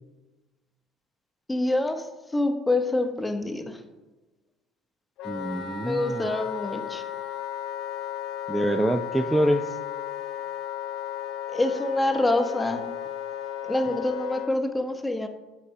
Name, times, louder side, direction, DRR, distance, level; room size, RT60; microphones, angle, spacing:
voice 1, 1.5-2.1 2.3-3.8 5.8-7.0 11.5-12.8 13.6-15.3, left 2 dB, 10° left, 7 dB, 0.9 m, -26 dB
Wind instrument woodwind instrument, 5.2-14.5, left 11 dB, 65° left, 0.7 m, -34 dB
voice 2, 5.2-6.3 8.5-9.8, right 1 dB, 10° right, 8 dB, 0.4 m, -25 dB
8.9 x 6.6 x 2.7 m, 1.2 s
hypercardioid pair, 70°, 0 cm